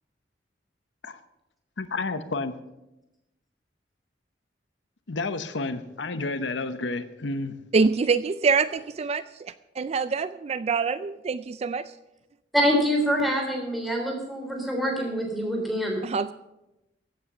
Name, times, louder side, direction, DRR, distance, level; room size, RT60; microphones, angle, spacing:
voice 1, 1.8-2.5 5.1-7.5, left 3 dB, 90° left, 0.9 m, -30 dB
voice 2, 7.7-11.8 16.0-16.3, right 4 dB, 35° right, 0.4 m, -25 dB
voice 3, 12.5-16.0, equal, ahead, 3.4 m, -25 dB
15.5 x 8.7 x 6.8 m
head